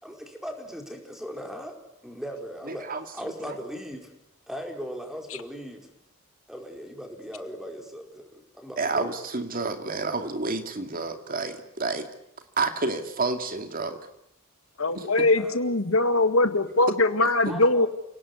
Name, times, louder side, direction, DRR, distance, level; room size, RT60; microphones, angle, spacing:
voice 1, 0.0-2.9 3.1-4.1 4.5-5.9 6.5-9.1 14.9-15.8 17.5-17.9, equal, ahead, 3 dB, 4.7 m, -39 dB
voice 2, 2.7-3.6 8.8-12.1 12.6-14.0 14.9-15.3 17.4-17.5, right 3 dB, 45° right, 7 dB, 2.4 m, -30 dB
voice 3, 14.8-17.9, left 2 dB, 80° left, 10 dB, 2.0 m, -22 dB
29.0 x 18.5 x 9.7 m, 0.83 s
head